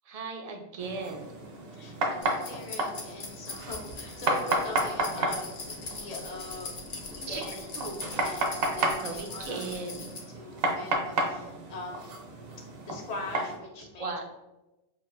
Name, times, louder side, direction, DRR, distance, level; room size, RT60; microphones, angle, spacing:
voice 1, 0.0-1.4 4.9-5.3 6.9-7.4 7.7-8.0 9.0-10.0 13.8-14.2, right 4 dB, 45° right, 3 dB, 0.5 m, -38 dB
sound 1, 0.8-13.6, right 2 dB, 65° right, 0.9 m, -33 dB
voice 2, 1.7-7.7 8.2-8.9 9.3-9.6 10.3-12.1 12.9-14.1, left 2 dB, 45° left, 0 dB, 0.7 m, -42 dB
sound 2, 2.2-10.2, left 3 dB, 70° left, 1.0 m, -41 dB
5.7 x 2.5 x 2.5 m, 1.0 s
omnidirectional pair, 1.1 m